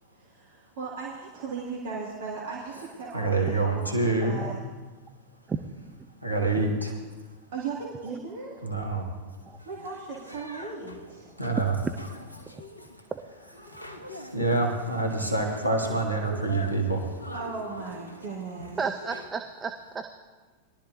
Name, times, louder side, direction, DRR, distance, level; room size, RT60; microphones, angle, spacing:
voice 1, 0.2-4.6 7.5-8.6 9.7-11.3 17.3-18.8, right 4 dB, 55° right, -4 dB, 2.1 m, -37 dB
voice 2, 3.1-4.4 6.2-6.9 8.6-9.0 11.4-11.7 14.3-17.0, right 2 dB, 90° right, 1 dB, 1.5 m, -26 dB
sound 1, 9.6-19.3, left 1 dB, 85° left, 0.9 m, -44 dB
voice 3, 18.8-20.0, right 5 dB, 15° right, 6 dB, 0.6 m, -33 dB
21.0 x 12.0 x 2.7 m, 1.3 s
figure-of-eight pair, 90°, 0 cm